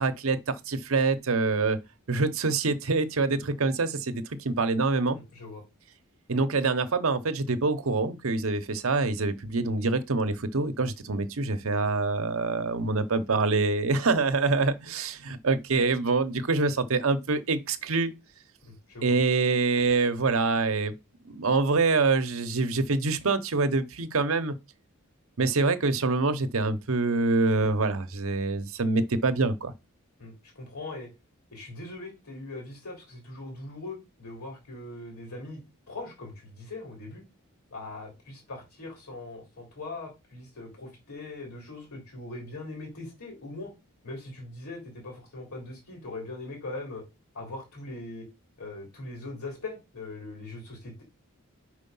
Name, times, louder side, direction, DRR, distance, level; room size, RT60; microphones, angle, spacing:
voice 1, 0.0-1.8 2.1-5.2 6.3-18.1 19.0-20.9 21.3-24.6 25.4-29.7, right 3 dB, 70° right, 0.8 m, -25 dB
voice 2, 5.1-5.6 18.6-19.2 30.2-31.1 31.5-35.6 35.9-37.2 37.7-43.7 44.0-47.0 47.3-48.2 48.6-51.0, left 2 dB, 90° left, 3.4 m, -41 dB
4.7 x 4.7 x 5.4 m
head